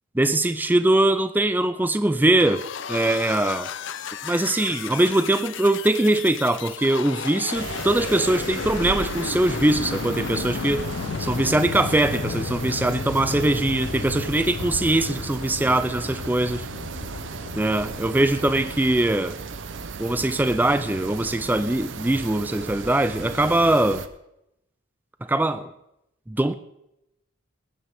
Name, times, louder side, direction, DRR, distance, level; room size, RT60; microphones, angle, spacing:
voice 1, 0.2-3.7 4.2-10.8 11.2-16.7 17.5-19.4 20.0-24.0 25.3-25.7 26.3-26.5, right 1 dB, 10° right, 0.4 m, -22 dB
sound 1, 2.4-19.0, left 5 dB, 60° left, 0.5 m, -33 dB
sound 2, 7.5-24.1, right 4 dB, 60° right, 0.7 m, -36 dB
20.0 x 9.9 x 3.5 m
head